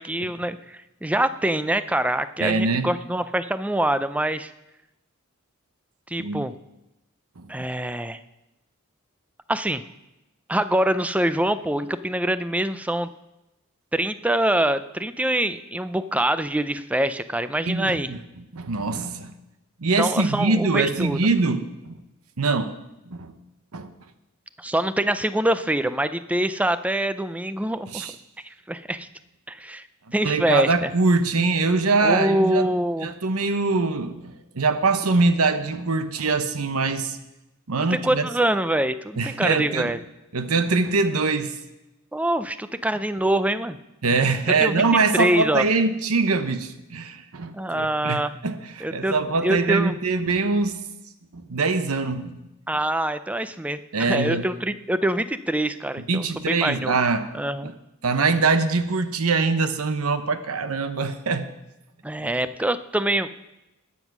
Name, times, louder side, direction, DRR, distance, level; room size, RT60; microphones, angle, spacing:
voice 1, 0.0-4.5 6.1-6.5 7.5-8.2 9.5-9.8 10.5-13.1 13.9-18.1 20.0-21.2 24.6-28.1 28.4-29.1 29.5-29.9 30.1-30.9 32.0-33.1 37.9-40.0 42.1-43.8 44.6-44.9 45.1-45.6 47.5-48.3 48.8-49.1 49.4-50.0 52.7-57.0 57.3-57.7 62.0-63.3, right 1 dB, 5° right, 12 dB, 0.5 m, -24 dB
voice 2, 2.4-2.9 6.2-6.5 7.4-7.5 17.6-18.2 18.5-19.3 19.8-22.0 22.4-22.8 23.1-23.4 23.7-23.9 27.9-28.1 30.2-32.6 33.0-37.2 37.7-38.3 39.2-39.9 40.3-41.6 44.0-50.8 51.3-52.4 53.9-54.5 56.1-57.3 57.6-57.7 58.0-61.5, right 3 dB, 85° right, 10 dB, 1.0 m, -23 dB
20.0 x 7.3 x 6.0 m, 0.95 s
head